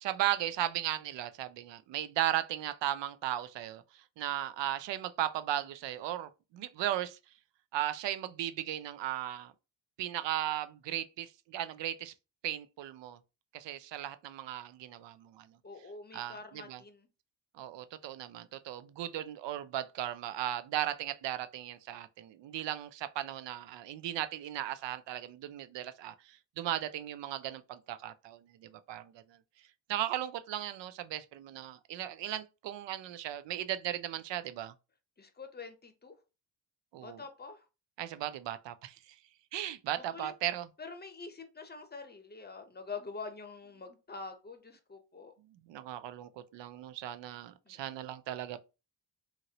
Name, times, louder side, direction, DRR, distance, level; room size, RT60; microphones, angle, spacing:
voice 1, 0.0-3.8 4.2-7.2 7.7-9.5 10.0-12.1 12.4-13.2 13.5-15.5 16.1-16.8 17.6-29.2 29.9-34.7 36.9-37.2 38.0-39.0 39.5-40.7 45.7-48.6, right 12 dB, 65° right, 0.5 m, -36 dB
voice 2, 15.6-17.1 35.2-36.2 37.0-37.6 40.0-40.3 40.8-45.3 47.6-47.8, left 4 dB, 20° left, 0.7 m, -46 dB
2.9 x 2.5 x 2.8 m
supercardioid pair, 60°, 48 cm